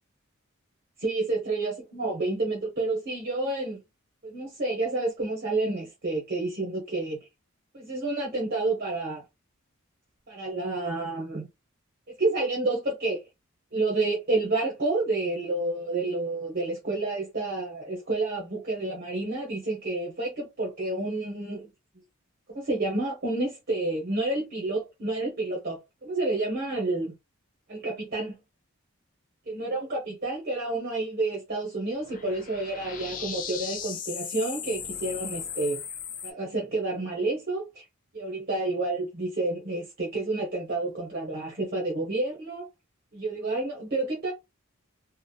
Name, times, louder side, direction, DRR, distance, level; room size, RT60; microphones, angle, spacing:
voice 1, 1.0-3.8 4.2-7.2 7.7-9.2 10.3-11.5 12.2-13.2 13.7-21.7 22.5-27.1 27.7-28.4 29.5-35.8 36.2-37.8 38.1-42.7 43.1-44.3, right 2 dB, 45° right, 0.7 m, -29 dB
sound 1, 32.0-36.3, left 8 dB, 40° left, 0.4 m, -37 dB
2.8 x 2.0 x 2.2 m
head